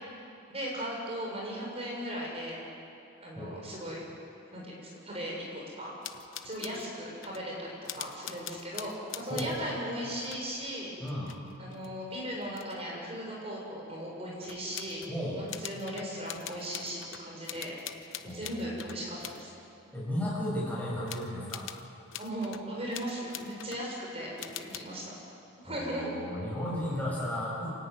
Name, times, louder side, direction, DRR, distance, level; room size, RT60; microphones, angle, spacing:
voice 1, 0.5-2.6 3.2-4.0 4.5-5.9 6.4-10.9 11.6-15.0 15.4-17.7 18.0-19.5 22.2-25.1 25.6-26.2, equal, 30° right, -3 dB, 6.7 m, -37 dB
sound 1, 6.0-6.9 7.2-7.5 7.9-9.9 10.2-10.5 11.1-12.8 14.4-15.2 15.5-19.4 21.1-22.6 22.9-23.9 24.4-24.8, left 10 dB, 65° left, 1.0 m, -44 dB
voice 2, 15.1-15.4 18.3-18.7 19.9-21.6 25.6-27.7, equal, 5° left, -6 dB, 7.9 m, -34 dB
26.5 x 17.0 x 9.5 m, 2.8 s
head